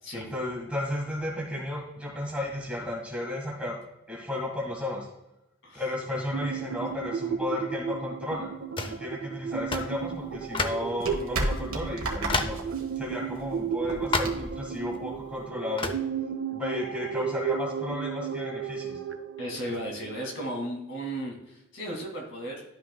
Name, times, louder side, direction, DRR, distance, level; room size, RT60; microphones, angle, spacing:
voice 1, 0.1-3.8 4.1-5.1 5.7-8.5 8.8-12.6 13.0-15.9 16.5-18.9, left 1 dB, 5° right, -2 dB, 1.7 m, -33 dB
sound 1, 6.3-20.7, right 7 dB, 65° right, 0.5 m, -34 dB
sound 2, 8.8-9.0 9.7-10.0 10.5-10.9 11.5-11.6 12.3-12.7 14.1-14.5 15.8-16.1, left 3 dB, 25° left, 0.5 m, -29 dB
sound 3, 9.5-15.5, right 2 dB, 90° right, 1.5 m, -35 dB
voice 2, 19.4-22.6, right 1 dB, 60° left, 0 dB, 2.4 m, -35 dB
12.0 x 5.8 x 2.3 m, 0.90 s
head